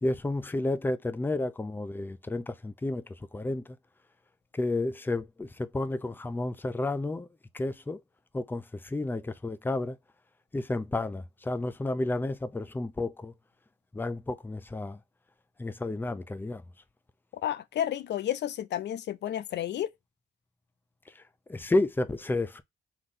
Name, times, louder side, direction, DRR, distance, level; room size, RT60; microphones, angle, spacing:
voice 1, 0.0-3.0 3.3-3.6 4.5-7.3 7.5-8.0 8.3-10.0 10.5-13.3 13.9-15.0 15.6-16.6 21.5-22.6, left 2 dB, 10° left, 0.5 m, -31 dB
voice 2, 17.4-19.9, left 11 dB, 60° left, 0.4 m, -31 dB
3.8 x 3.0 x 3.8 m
cardioid pair, 90°, 20 cm